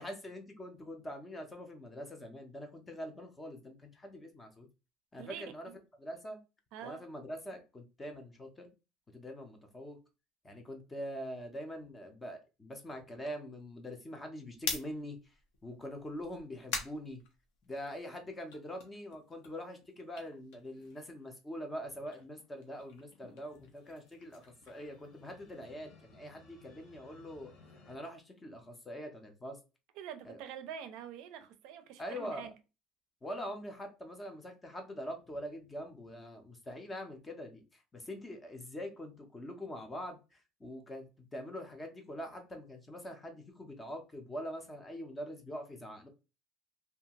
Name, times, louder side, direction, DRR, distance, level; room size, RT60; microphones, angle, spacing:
voice 1, 0.0-4.7 5.1-5.7 6.0-6.4 6.8-8.7 9.1-10.0 10.4-15.2 15.6-17.2 17.6-27.5 27.9-29.6 30.2-30.4 32.0-32.5 33.2-46.1, equal, 15° left, 0.5 m, -44 dB
voice 2, 5.2-5.8 6.7-7.0 30.0-32.5, right 9 dB, 65° right, 0.4 m, -46 dB
sound 1, 14.5-18.0 18.4-21.3 21.6-25.7, left 4 dB, 75° left, 0.7 m, -45 dB
sound 2, 23.5-28.0, left 3 dB, 45° left, 0.9 m, -60 dB
2.7 x 2.3 x 2.8 m
cardioid pair, 150°, 0 cm